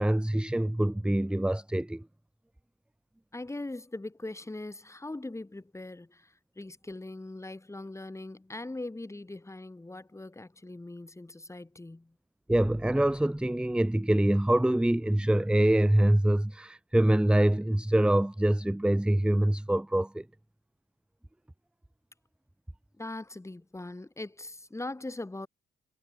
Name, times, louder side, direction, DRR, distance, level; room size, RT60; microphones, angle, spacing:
voice 1, 0.0-2.0 12.5-20.2, right 1 dB, 5° right, 0.9 m, -25 dB
voice 2, 3.3-12.1 23.0-25.5, left 2 dB, 15° left, 6.7 m, -41 dB
cardioid pair, 90°, 20 cm